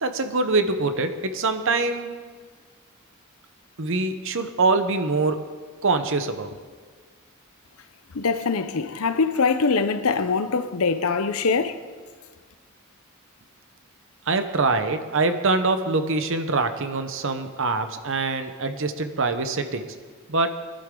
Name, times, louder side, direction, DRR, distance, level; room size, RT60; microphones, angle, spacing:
voice 1, 0.0-2.1 3.8-5.4 5.8-6.6 14.3-19.9 20.3-20.6, right 3 dB, 60° right, 1.0 m, -24 dB
voice 2, 8.1-11.8, left 4 dB, 75° left, 0.7 m, -23 dB
20.5 x 11.5 x 3.8 m
head